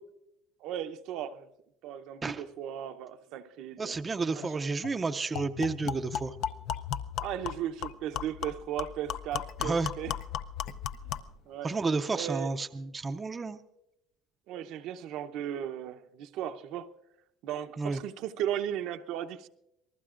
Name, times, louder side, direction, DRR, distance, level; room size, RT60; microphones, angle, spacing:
voice 1, 0.6-1.5 1.8-4.0 4.3-4.4 7.2-10.1 11.0-11.7 12.1-12.5 14.5-16.9 17.4-19.5, right 10 dB, 65° right, 0.7 m, -36 dB
voice 2, 3.8-6.4 9.6-9.9 11.6-13.6 17.8-18.0, right 4 dB, 20° right, 0.5 m, -31 dB
sound 1, 4.4-4.5 4.8-5.0 5.3-11.4, left 9 dB, 60° left, 0.5 m, -36 dB
27.0 x 19.5 x 2.5 m
cardioid pair, 145°, 0 cm